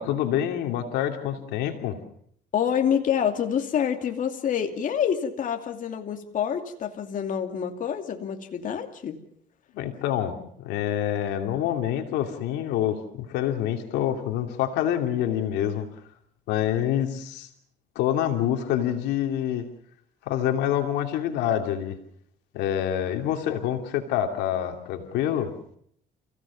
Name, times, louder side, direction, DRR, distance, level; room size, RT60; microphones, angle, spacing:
voice 1, 0.0-2.0 9.7-15.9 16.5-17.5 17.9-19.6 20.2-22.0 22.5-25.5, left 10 dB, 90° left, 5 dB, 2.8 m, -26 dB
voice 2, 2.5-9.2, left 8 dB, 50° left, 4 dB, 2.6 m, -27 dB
30.0 x 17.0 x 7.2 m, 0.67 s
cardioid pair, 110°, 17 cm